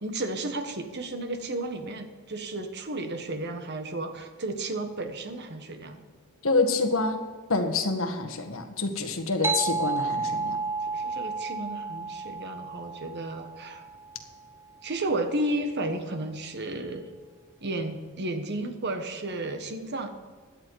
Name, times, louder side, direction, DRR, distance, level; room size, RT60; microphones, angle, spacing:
voice 1, 0.0-6.0 10.8-13.9 14.8-17.1 17.6-20.1, right 2 dB, 50° right, 7 dB, 1.4 m, -33 dB
voice 2, 6.4-7.2 7.5-10.6, left 3 dB, 70° left, 6 dB, 1.5 m, -27 dB
sound 1, 9.4-14.4, right 4 dB, 10° right, 0.5 m, -32 dB
16.5 x 11.0 x 4.7 m, 1.5 s
head